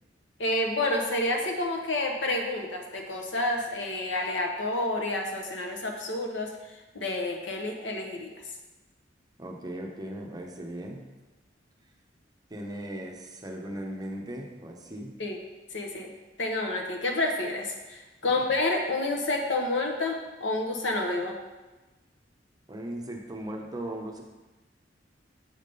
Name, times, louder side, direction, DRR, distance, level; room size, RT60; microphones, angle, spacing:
voice 1, 0.4-6.5 6.9-8.3 15.2-15.4 15.7-16.1 16.4-21.3, left 2 dB, 75° left, 2 dB, 1.0 m, -29 dB
voice 2, 9.4-11.1 12.5-15.1 18.3-18.4 22.7-24.2, right 1 dB, 20° right, 1 dB, 0.7 m, -38 dB
7.3 x 3.5 x 5.3 m, 1.1 s
head